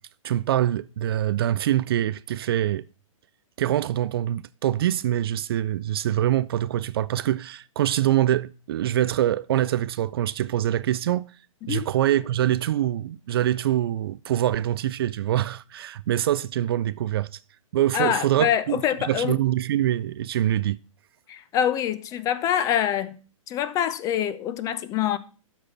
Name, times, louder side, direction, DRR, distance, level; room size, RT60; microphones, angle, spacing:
voice 1, 0.2-2.8 3.6-11.3 11.7-17.3 17.7-20.8, right 12 dB, 45° right, 0.4 m, -24 dB
voice 2, 17.9-19.4 21.3-23.2 23.5-25.2, left 10 dB, 20° left, 0.6 m, -25 dB
12.5 x 4.3 x 5.7 m
figure-of-eight pair, 125°, 17 cm